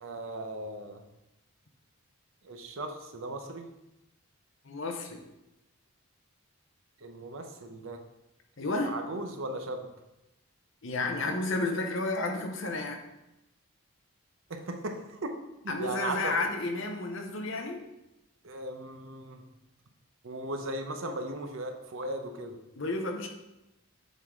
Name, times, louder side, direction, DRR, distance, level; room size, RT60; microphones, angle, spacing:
voice 1, 0.0-1.0 2.4-3.6 7.0-8.0 8.6-9.9 14.5-15.3 15.6-16.4 18.4-19.4 20.2-22.6, right 1 dB, 65° right, 5 dB, 0.7 m, -37 dB
voice 2, 4.6-5.2 8.6-8.9 10.8-13.0 15.7-17.8 22.8-23.3, left 2 dB, 60° left, 4 dB, 0.8 m, -31 dB
7.4 x 3.8 x 3.6 m, 0.94 s
head